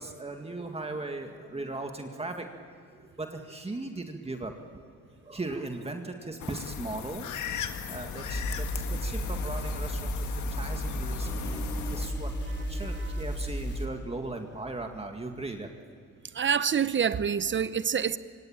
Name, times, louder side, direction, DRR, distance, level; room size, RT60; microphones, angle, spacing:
voice 1, 0.0-2.5 2.9-4.6 5.2-15.7, right 2 dB, 20° right, 2.0 m, -38 dB
sound 1, 6.4-12.1, left 8 dB, 75° left, 1.7 m, -38 dB
sound 2, 8.2-13.9, equal, 35° left, 3.2 m, -33 dB
sound 3, 11.2-15.3, right 1 dB, 10° left, 5.3 m, -47 dB
voice 2, 16.3-18.2, right 7 dB, 40° right, 0.9 m, -27 dB
25.5 x 24.0 x 8.9 m
cardioid pair, 90°, 30 cm